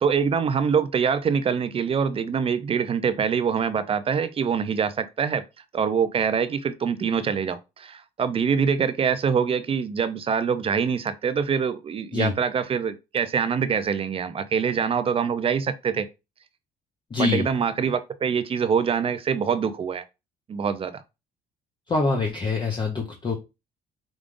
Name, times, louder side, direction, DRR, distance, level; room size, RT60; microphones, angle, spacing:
voice 1, 0.0-5.4 5.7-16.1 17.2-20.0 20.5-21.0, right 6 dB, 35° right, 0.5 m, -24 dB
voice 2, 17.1-17.5 21.9-23.3, left 3 dB, 25° left, 0.8 m, -24 dB
5.0 x 2.4 x 3.7 m
cardioid pair, 110°, 17 cm